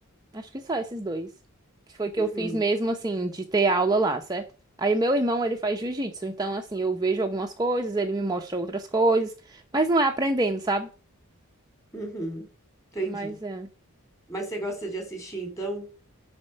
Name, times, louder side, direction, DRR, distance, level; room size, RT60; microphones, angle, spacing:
voice 1, 0.3-1.3 2.0-4.4 4.8-10.9 13.1-13.7, right 2 dB, 20° right, 0.9 m, -26 dB
voice 2, 2.2-2.6 11.9-12.5 12.9-13.4 14.3-15.9, right 2 dB, 15° left, 3.6 m, -33 dB
11.0 x 4.4 x 7.8 m
head